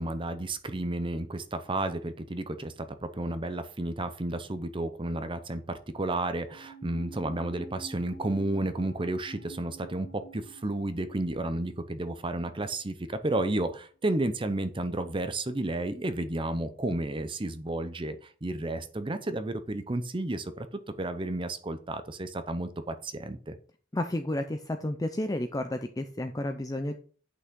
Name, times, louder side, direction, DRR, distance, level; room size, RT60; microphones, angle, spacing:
voice 1, 0.0-23.5, right 2 dB, 25° right, 11 dB, 0.7 m, -32 dB
sound 1, 6.5-13.0 13.3-13.4, right 2 dB, 80° left, 2.1 m, -48 dB
voice 2, 23.9-26.9, left 1 dB, 15° left, 6 dB, 0.5 m, -31 dB
8.4 x 6.1 x 3.7 m, 0.41 s
head